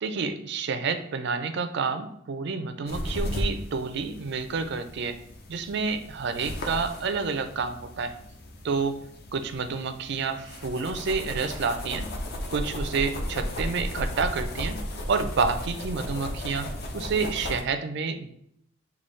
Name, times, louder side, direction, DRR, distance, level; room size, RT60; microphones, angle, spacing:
voice 1, 0.0-5.2 5.5-8.1 8.6-9.0 9.3-12.1 12.5-14.8 15.1-18.3, right 4 dB, 55° right, 9 dB, 0.4 m, -29 dB
sound 1, 2.9-17.6, left 1 dB, 50° left, 0.6 m, -35 dB
6.8 x 2.3 x 3.1 m, 0.71 s
head